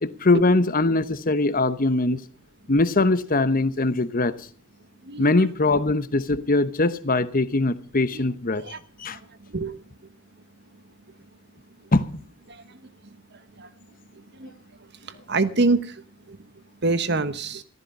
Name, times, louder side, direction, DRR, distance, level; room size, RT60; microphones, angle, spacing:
voice 1, 0.0-2.2 2.7-4.3 5.2-8.6 9.0-9.2 11.9-12.1, left 2 dB, 40° left, 1.0 m, -21 dB
voice 2, 15.3-15.8 16.8-17.6, right 3 dB, 50° right, 1.2 m, -23 dB
15.0 x 13.5 x 5.4 m
head